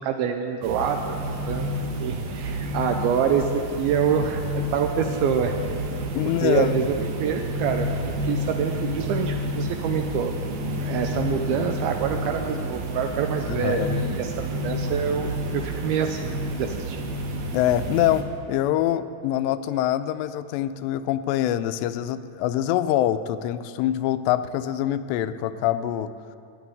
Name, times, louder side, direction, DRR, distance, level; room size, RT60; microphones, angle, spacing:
voice 1, 0.0-4.4 4.7-5.6 6.4-10.3 10.8-14.3 14.6-17.1, right 7 dB, 85° right, 5 dB, 2.2 m, -26 dB
sound 1, 0.6-18.2, equal, 60° right, 2.2 m, -30 dB
voice 2, 6.1-6.7 13.5-13.9 17.5-26.1, left 12 dB, 90° left, 11 dB, 2.8 m, -24 dB
13.0 x 8.7 x 9.4 m, 2.4 s
omnidirectional pair, 4.9 m